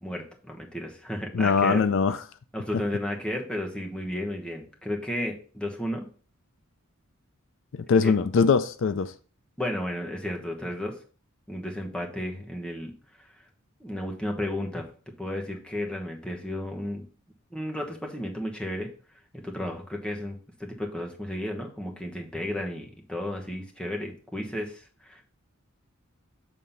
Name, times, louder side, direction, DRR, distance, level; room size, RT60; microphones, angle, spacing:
voice 1, 0.0-1.8 2.5-6.1 8.0-8.1 9.6-11.0 11.5-12.9 13.2-13.4 13.8-14.9 15.2-17.0 17.5-18.9 19.3-25.3, left 1 dB, 5° left, 1.1 m, -33 dB
voice 2, 1.3-2.2 7.7-9.1, left 5 dB, 60° left, 0.4 m, -22 dB
7.2 x 3.7 x 5.5 m
head